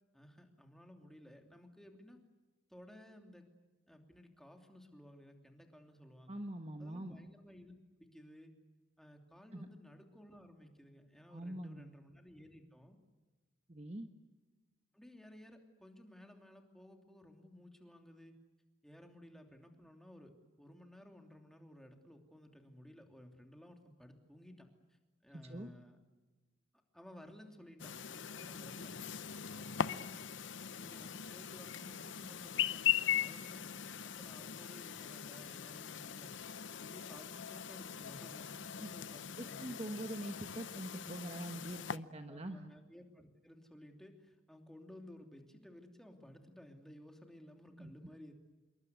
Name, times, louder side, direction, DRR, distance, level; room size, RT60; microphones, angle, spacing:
voice 1, 0.1-2.2 2.7-3.4 3.9-6.4 6.8-7.7 8.0-8.5 9.0-13.0 14.9-18.3 18.8-26.0 26.9-29.0 29.5-30.3 30.7-33.7 34.0-36.4 36.8-39.9 42.3-48.3, left 1 dB, ahead, 3 dB, 2.9 m, -56 dB
voice 2, 6.3-7.2 9.5-9.7 11.3-11.9 13.7-14.1 25.3-25.7 38.8-38.9 39.4-42.7 47.8-47.9, right 1 dB, 30° right, 6 dB, 1.3 m, -44 dB
Chirp tweet, 27.8-42.0, left 9 dB, 65° left, 0.8 m, -40 dB
27.5 x 23.0 x 8.2 m, 1.2 s
head